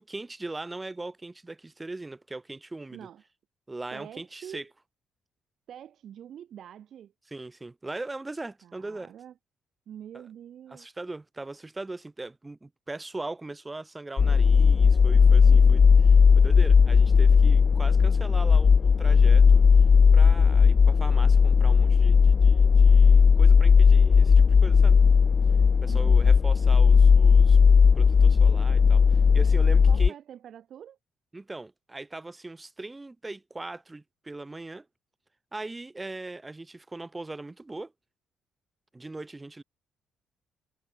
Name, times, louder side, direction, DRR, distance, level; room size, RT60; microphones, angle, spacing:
voice 1, 0.0-3.1 3.7-4.6 7.3-9.1 10.1-10.2 10.7-15.8 16.3-19.7 20.1-25.0 25.8-27.6 27.9-30.1 31.3-34.8 35.5-37.9 38.9-39.6, right 2 dB, 20° right, 4.6 m, -40 dB
voice 2, 2.9-3.2 3.9-4.7 5.7-7.1 8.6-9.3 9.9-10.9 15.5-15.9 25.8-26.4 29.7-31.0, right 10 dB, 65° right, 7.0 m, -45 dB
sound 1, 14.2-30.1, left 5 dB, 40° left, 0.6 m, -17 dB
cardioid pair, 90°, 0 cm